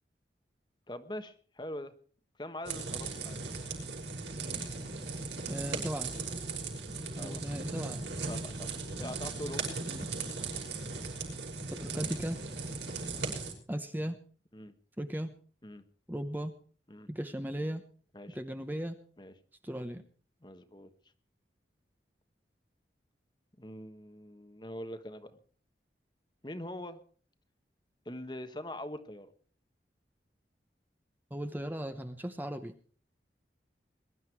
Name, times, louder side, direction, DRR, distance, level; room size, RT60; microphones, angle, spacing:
voice 1, 0.9-1.9 2.4-3.4 7.2-7.4 8.3-8.7 9.0-9.8 13.2-13.4 14.5-14.7 15.6-15.8 16.9-17.1 18.1-18.4 19.2-19.3 20.4-20.9 23.6-25.4 26.4-27.0 28.0-29.3, left 1 dB, 25° left, 9 dB, 1.2 m, -43 dB
sound 1, 2.7-13.5, right 4 dB, 85° right, 5.7 m, -38 dB
voice 2, 5.5-6.1 7.2-8.0 9.0-9.2 9.9-10.1 11.8-12.4 13.7-14.2 15.0-15.3 16.1-16.5 17.1-17.8 18.3-19.0 19.6-20.0 31.3-32.7, equal, 10° right, 7 dB, 0.9 m, -36 dB
22.0 x 12.0 x 4.6 m, 0.43 s
head